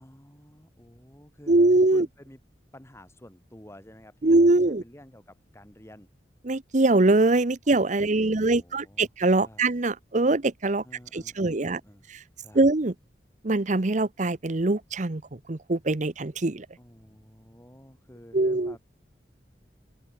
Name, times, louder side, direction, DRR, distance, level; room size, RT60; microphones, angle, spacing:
voice 1, 0.0-1.5 1.9-2.4 2.7-6.1 8.0-9.1 9.4-9.7 10.8-12.1 12.4-12.7 16.8-18.8, equal, 15° left, 3.9 m, -51 dB
voice 2, 1.5-2.1 4.2-4.8 6.4-10.8 11.1-11.8 12.5-12.9 13.4-16.7 18.3-18.7, right 2 dB, 45° right, 0.9 m, -22 dB
head